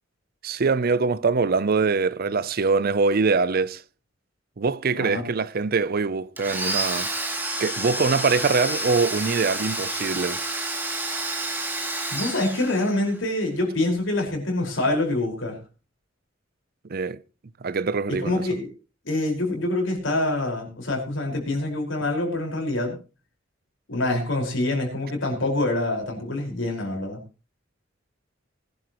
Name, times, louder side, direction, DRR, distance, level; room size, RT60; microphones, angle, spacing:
voice 1, 0.4-3.8 4.6-7.1 7.6-10.4 16.9-17.2 17.6-18.5, right 4 dB, 50° right, 0.6 m, -23 dB
Domestic sounds home sounds, 6.4-13.2, right 2 dB, 10° right, 2.7 m, -29 dB
voice 2, 12.1-15.6 18.1-18.7 19.0-23.0 23.9-27.2, left 2 dB, 75° left, 5.0 m, -26 dB
20.5 x 11.5 x 3.0 m
head